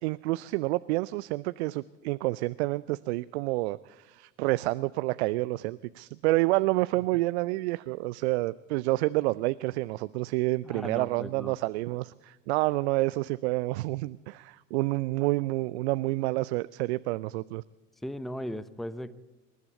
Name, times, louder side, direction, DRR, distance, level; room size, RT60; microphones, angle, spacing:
voice 1, 0.0-17.6, right 20 dB, 60° right, 0.6 m, -29 dB
voice 2, 10.6-11.6 18.0-19.1, equal, ahead, 0.8 m, -37 dB
26.5 x 12.0 x 8.1 m
figure-of-eight pair, 70°, 38 cm